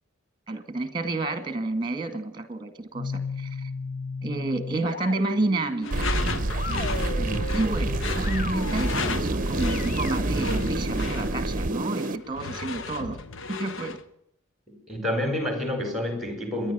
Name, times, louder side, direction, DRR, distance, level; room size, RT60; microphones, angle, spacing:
voice 1, 0.5-3.7 4.2-6.1 6.7-6.8 7.2-13.2 13.5-14.0, right 2 dB, 20° right, 11 dB, 1.9 m, -30 dB
sound 1, 2.9-11.5, left 3 dB, 40° left, 1.1 m, -36 dB
Door / Screech, 5.8-14.1, left 4 dB, 60° left, 1.1 m, -35 dB
sound 2, 5.9-12.2, right 2 dB, 40° right, 0.8 m, -27 dB
voice 2, 14.7-16.7, left 1 dB, ahead, 7 dB, 4.7 m, -29 dB
26.5 x 10.5 x 9.3 m, 0.75 s
head